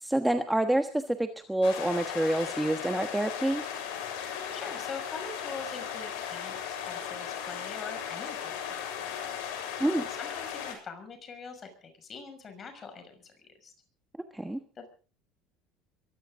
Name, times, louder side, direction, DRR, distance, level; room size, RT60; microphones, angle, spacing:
voice 1, 0.0-3.6 9.8-10.1 14.3-14.6, right 1 dB, 5° right, 6 dB, 1.3 m, -27 dB
sound 1, 1.6-10.7, left 8 dB, 90° left, 7.5 m, -37 dB
voice 2, 4.5-6.6 6.8-9.3 10.1-13.3 13.6-13.7 14.7-14.9, left 4 dB, 30° left, 8 dB, 6.2 m, -43 dB
23.0 x 16.5 x 3.8 m, 0.38 s
cardioid pair, 135°, 0 cm